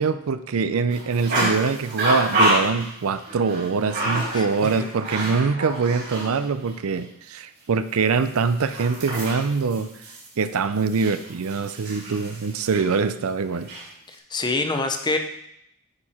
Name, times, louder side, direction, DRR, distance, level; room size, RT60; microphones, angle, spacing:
voice 1, 0.0-9.9 10.4-13.7, right 5 dB, 75° right, 12 dB, 0.5 m, -24 dB
sound 1, 0.9-6.4 6.6-6.7 8.2-13.0 13.4-13.8, right 1 dB, 55° right, 3.4 m, -28 dB
voice 2, 4.3-4.7 14.1-15.2, left 3 dB, 20° left, 6 dB, 0.6 m, -26 dB
9.6 x 4.7 x 4.3 m, 0.77 s
head